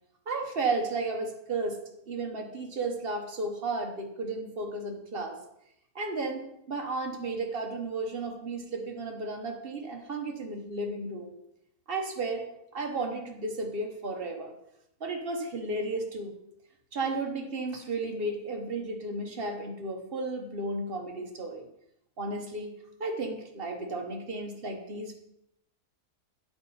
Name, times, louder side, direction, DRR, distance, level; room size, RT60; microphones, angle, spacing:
voice 1, 0.3-1.8 2.1-5.4 5.9-11.3 11.9-12.5 12.7-14.5 15.0-16.3 16.9-21.6 22.2-25.1, right 2 dB, 45° right, 3 dB, 1.0 m, -33 dB
7.5 x 4.1 x 5.5 m, 0.79 s
omnidirectional pair, 1.6 m